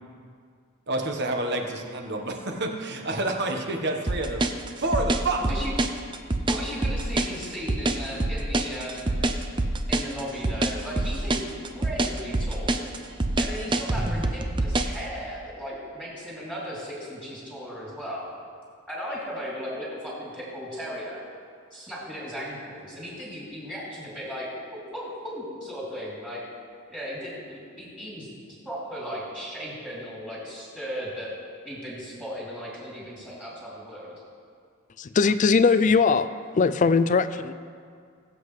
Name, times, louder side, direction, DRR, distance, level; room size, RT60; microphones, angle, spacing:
voice 1, 0.9-4.5 4.8-5.4, right 2 dB, 50° right, 3 dB, 1.2 m, -28 dB
sound 1, 4.1-15.0, right 2 dB, 20° right, 0.5 m, -25 dB
voice 2, 5.4-5.7 6.5-9.1 9.9-11.4 11.7-12.8 13.4-18.3 18.9-21.2 21.7-26.4 26.9-28.3 28.6-31.3 31.6-34.1, equal, 5° right, -8 dB, 2.9 m, -36 dB
voice 3, 35.0-36.3 36.5-37.5, left 5 dB, 35° left, 13 dB, 0.4 m, -20 dB
20.5 x 7.8 x 3.2 m, 2.2 s
head